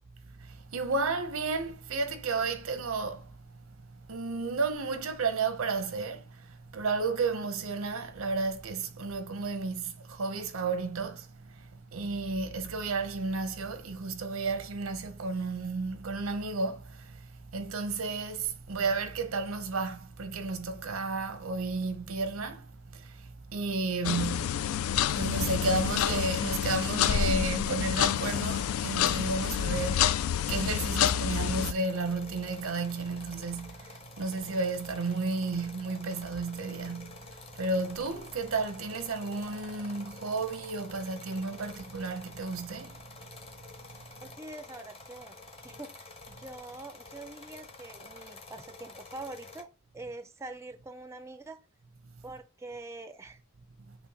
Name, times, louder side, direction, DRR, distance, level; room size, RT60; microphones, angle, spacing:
voice 1, 0.4-3.3 3.9-24.6 25.0-43.0 53.9-54.0, right 3 dB, 90° right, 0.7 m, -33 dB
sound 1, 24.0-31.7, left 9 dB, 90° left, 0.3 m, -28 dB
sound 2, 31.5-49.6, left 3 dB, 30° left, 0.8 m, -49 dB
voice 2, 44.2-49.7 49.9-51.6 52.2-53.4, right 2 dB, 15° right, 0.4 m, -44 dB
5.6 x 2.2 x 4.1 m
head